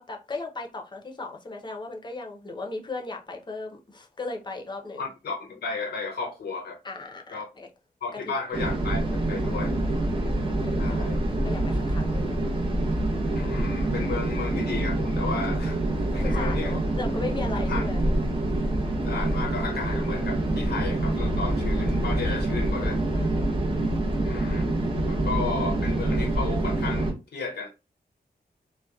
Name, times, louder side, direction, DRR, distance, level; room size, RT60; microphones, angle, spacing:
voice 1, 0.0-5.1 6.8-7.7 10.6-11.1 11.4-12.5 16.2-18.0 23.1-23.6, left 3 dB, 30° left, 0.6 m, -37 dB
voice 2, 5.0-6.8 7.3-7.4 8.0-9.8 10.8-11.2 13.3-15.8 16.1-16.8 17.7-17.8 19.0-23.0 24.2-24.7 25.1-27.7, left 4 dB, 80° left, 0.5 m, -33 dB
sound 1, 8.5-27.1, right 1 dB, 30° right, 0.7 m, -26 dB
2.8 x 2.1 x 2.3 m
wide cardioid pair, 120°, 17 cm